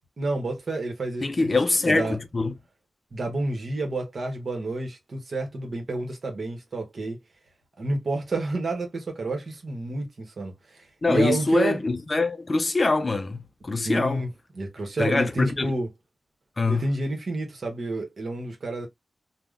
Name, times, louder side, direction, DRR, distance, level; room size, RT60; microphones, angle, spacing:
voice 1, 0.2-1.6 1.9-2.2 3.1-7.2 7.8-11.8 13.8-14.3 14.5-15.9 16.7-18.9, right 2 dB, 55° right, 0.9 m, -29 dB
voice 2, 1.2-2.5 11.0-14.2 15.0-15.7 16.6-16.8, left 3 dB, 35° left, 0.4 m, -24 dB
3.5 x 2.1 x 2.3 m
wide cardioid pair, 125°, 0 cm